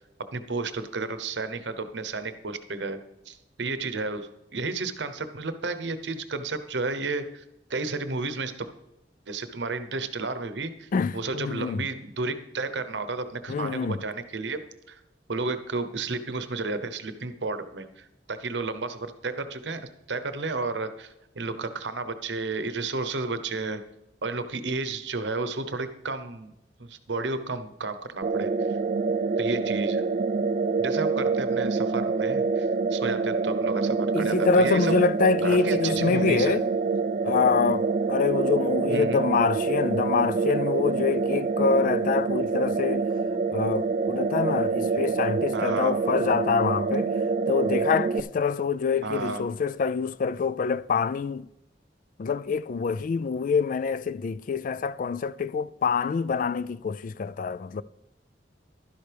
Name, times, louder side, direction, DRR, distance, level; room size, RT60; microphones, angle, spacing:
voice 1, 0.3-3.0 3.3-7.4 7.7-8.7 9.3-14.6 14.9-15.0 15.3-23.8 24.2-26.5 26.8-28.8 29.4-30.0 30.8-34.9 35.4-36.6 38.9-39.2 45.5-45.9 49.0-49.4, right 3 dB, 85° right, 0.9 m, -32 dB
voice 2, 10.9-11.9 13.5-14.0 34.1-36.7 37.2-43.1 43.5-47.1 47.5-51.5 52.2-57.8, left 5 dB, 50° left, 0.3 m, -26 dB
sound 1, 28.2-48.2, right 4 dB, 45° right, 0.3 m, -26 dB
12.0 x 10.5 x 3.4 m
head